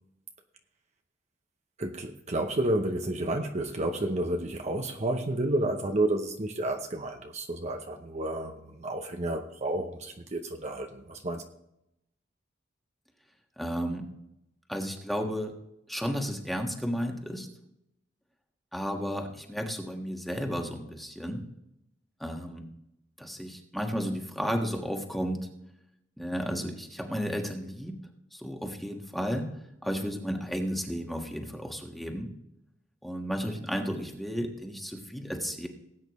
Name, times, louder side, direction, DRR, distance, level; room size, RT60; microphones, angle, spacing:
voice 1, 1.8-11.4, right 1 dB, 35° right, 0.8 m, -31 dB
voice 2, 13.6-14.0 14.7-15.5 15.9-17.5 18.7-21.4 22.2-22.7 23.2-25.4 26.2-28.0 28.3-29.5 29.8-32.4 33.0-35.7, equal, ahead, 1.5 m, -33 dB
19.0 x 8.8 x 3.2 m
head